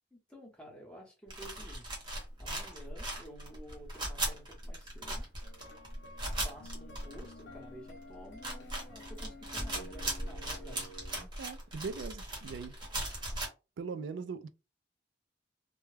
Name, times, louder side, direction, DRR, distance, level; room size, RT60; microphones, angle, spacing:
voice 1, 0.1-1.9 2.4-5.3 6.4-10.9, equal, 5° left, 0.8 m, -52 dB
sound 1, 1.3-7.5 7.9-8.0 8.3-13.5, right 1 dB, 25° right, 0.9 m, -38 dB
sound 2, 5.4-11.2, left 1 dB, 75° left, 0.7 m, -51 dB
voice 2, 11.4-12.7 13.8-14.5, right 5 dB, 85° right, 0.4 m, -40 dB
2.2 x 2.1 x 3.2 m
head